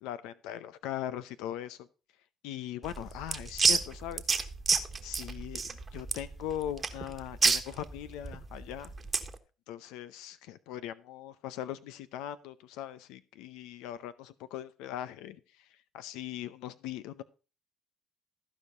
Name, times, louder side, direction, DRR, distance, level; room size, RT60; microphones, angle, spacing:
voice 1, 0.0-1.9 2.4-4.2 5.0-8.9 9.7-15.4 15.9-17.2, left 11 dB, 85° left, 14 dB, 0.6 m, -40 dB
sound 1, 2.8-9.4, right 4 dB, 30° right, 1.3 m, -30 dB
14.5 x 5.0 x 5.4 m, 0.34 s
supercardioid pair, 85°, 0 cm